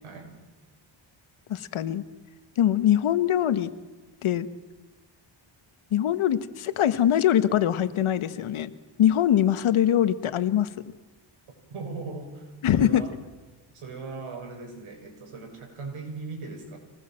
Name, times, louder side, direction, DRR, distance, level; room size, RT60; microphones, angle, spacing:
voice 1, 0.0-0.4 11.7-12.5 12.7-13.1 13.7-16.8, right 4 dB, 85° right, 3 dB, 6.6 m, -38 dB
voice 2, 1.5-2.0 2.6-3.7 4.2-4.5 5.9-8.7 9.0-10.7 12.6-13.1, left 10 dB, 80° left, 12 dB, 1.4 m, -23 dB
26.0 x 20.0 x 7.6 m, 1.2 s
cardioid pair, 120°, 49 cm